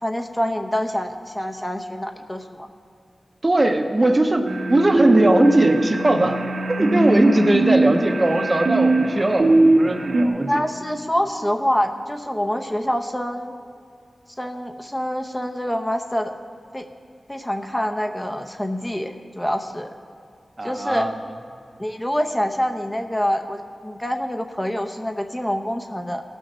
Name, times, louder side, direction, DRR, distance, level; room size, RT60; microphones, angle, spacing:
voice 1, 0.0-2.7 10.5-13.5 14.4-16.3 16.7-16.8 17.3-19.9 20.6-21.1 21.8-26.2, equal, 15° left, 5 dB, 0.8 m, -26 dB
voice 2, 3.4-6.4 6.7-10.6 20.6-21.1, right 1 dB, 35° right, 6 dB, 0.8 m, -19 dB
sound 1, 4.5-10.3, right 2 dB, 70° right, 1.1 m, -20 dB
16.0 x 6.4 x 6.2 m, 2.2 s
cardioid pair, 55°, 0 cm